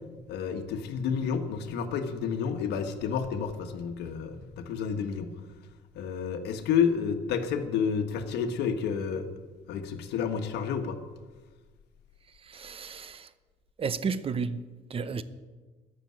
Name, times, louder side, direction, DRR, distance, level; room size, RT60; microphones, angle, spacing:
voice 1, 0.3-5.3 5.9-9.3 9.7-11.0, left 7 dB, 80° left, 7 dB, 1.4 m, -30 dB
voice 2, 12.5-13.3 13.8-14.6 14.9-15.2, right 5 dB, 35° right, 14 dB, 0.7 m, -32 dB
13.5 x 6.9 x 9.6 m, 1.4 s
cardioid pair, 110°, 17 cm